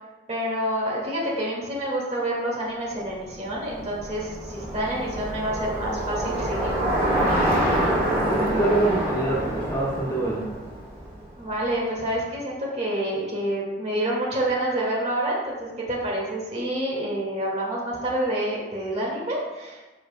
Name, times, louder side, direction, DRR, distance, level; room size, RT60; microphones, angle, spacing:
voice 1, 0.3-7.0 11.4-19.8, right 1 dB, 40° right, -4 dB, 1.9 m, -28 dB
Bicycle, 3.2-11.5, right 1 dB, 20° right, 2.5 m, -26 dB
voice 2, 8.2-10.4, right 2 dB, 20° left, -6 dB, 1.9 m, -25 dB
12.5 x 5.3 x 2.2 m, 1.1 s
head